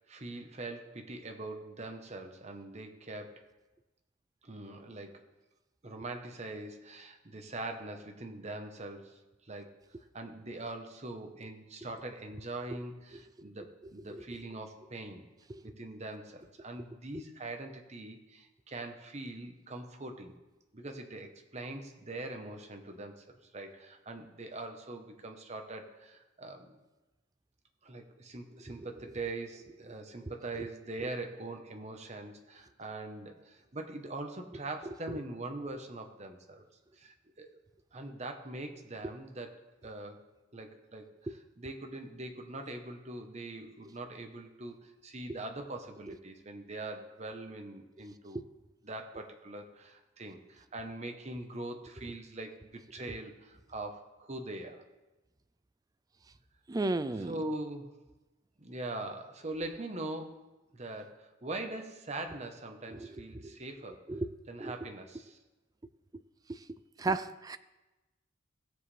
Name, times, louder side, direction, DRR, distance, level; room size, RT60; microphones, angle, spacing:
voice 1, 0.1-3.4 4.4-5.2 5.8-9.8 10.1-15.3 15.6-20.4 20.7-26.7 27.8-36.7 37.0-37.6 37.9-48.4 48.8-54.8 57.3-57.9 58.6-64.1 64.5-65.4, right 2 dB, 35° right, 5 dB, 1.0 m, -42 dB
voice 2, 56.7-57.3 63.3-63.5 64.1-64.3 64.6-64.7 66.5-66.6 67.0-67.6, right 2 dB, 20° right, 13 dB, 0.3 m, -33 dB
16.0 x 7.4 x 3.3 m, 1.1 s
head